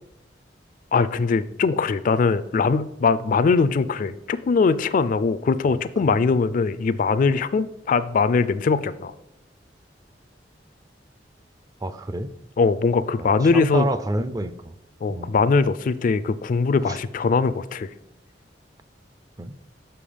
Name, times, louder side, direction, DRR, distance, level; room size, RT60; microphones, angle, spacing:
voice 1, 0.9-9.1 12.6-13.9 15.0-17.9, left 4 dB, 50° left, 0.3 m, -21 dB
voice 2, 11.8-12.3 13.5-14.5 15.1-15.3 16.9-17.0 19.4-19.5, right 1 dB, 20° right, 0.4 m, -27 dB
7.0 x 5.7 x 5.0 m
head